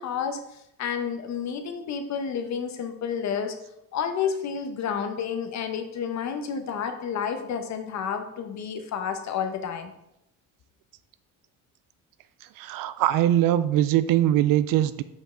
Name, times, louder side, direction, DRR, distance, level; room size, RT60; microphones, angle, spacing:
voice 1, 0.0-3.6 3.9-9.9, left 7 dB, 50° left, 7 dB, 0.9 m, -30 dB
voice 2, 12.6-15.0, right 12 dB, 65° right, 14 dB, 0.5 m, -22 dB
5.4 x 5.2 x 3.7 m, 0.81 s
cardioid pair, 120°, 36 cm